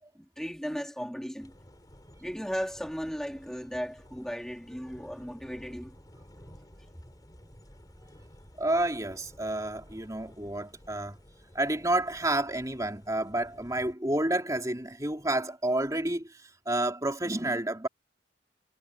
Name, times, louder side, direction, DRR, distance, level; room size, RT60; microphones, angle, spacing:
voice 1, 0.1-1.5 2.2-5.9, equal, 5° left, 3.0 m, -36 dB
sound 1, 1.4-13.9, equal, 20° left, 5.0 m, -54 dB
voice 2, 8.6-11.2 11.5-17.9, right 1 dB, 20° right, 2.9 m, -30 dB
head